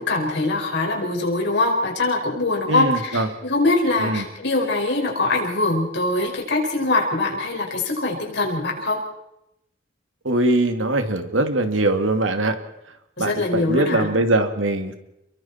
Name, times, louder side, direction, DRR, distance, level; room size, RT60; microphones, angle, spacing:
voice 1, 0.0-9.0 13.2-14.1, left 2 dB, 65° left, 0 dB, 5.6 m, -23 dB
voice 2, 2.7-3.3 4.0-4.2 10.2-12.6 13.2-14.9, right 2 dB, 90° right, 7 dB, 2.3 m, -21 dB
30.0 x 22.5 x 4.4 m, 0.85 s
head